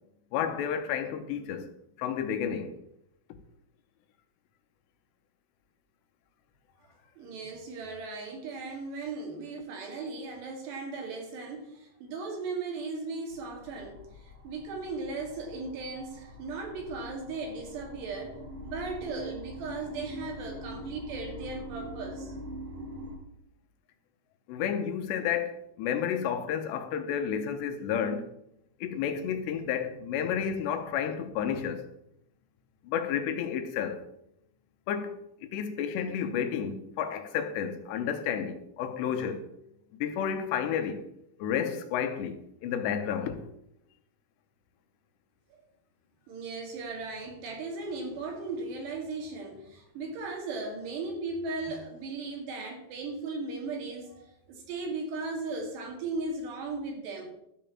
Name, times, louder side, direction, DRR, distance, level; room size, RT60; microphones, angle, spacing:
voice 1, 0.3-1.7 2.0-2.7 24.5-28.3 28.8-31.9 32.8-34.0 34.9-39.5 40.0-41.0 41.4-42.4 42.6-43.4, left 8 dB, 85° left, 3.1 m, -31 dB
voice 2, 7.2-18.4 18.6-22.4 45.5-45.6 46.3-57.3, right 3 dB, 70° right, 4.4 m, -37 dB
sound 1, 13.3-23.2, equal, 50° right, 6.4 m, -43 dB
13.5 x 5.2 x 7.4 m
omnidirectional pair, 5.1 m